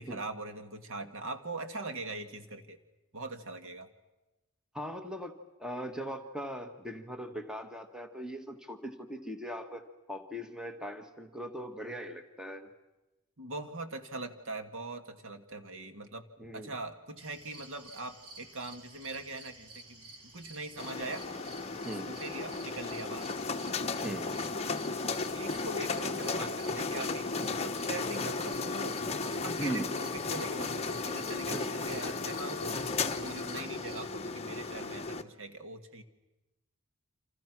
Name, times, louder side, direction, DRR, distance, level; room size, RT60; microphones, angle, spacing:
voice 1, 0.0-2.8 3.1-3.9 13.4-16.3 16.5-20.1 20.3-21.3 21.9-23.3 25.3-29.0 29.3-32.8 33.2-36.0, right 2 dB, 60° right, 8 dB, 1.8 m, -42 dB
voice 2, 4.7-5.3 5.6-12.7 16.4-16.7 21.8-22.2 24.0-24.4 29.6-29.9 31.5-31.6, equal, 5° right, 6 dB, 1.5 m, -39 dB
sound 1, 17.2-34.0, right 3 dB, 85° right, 4.4 m, -52 dB
sound 2, 20.8-35.2, left 4 dB, 30° left, 0.9 m, -35 dB
29.0 x 27.0 x 6.1 m, 1.1 s
head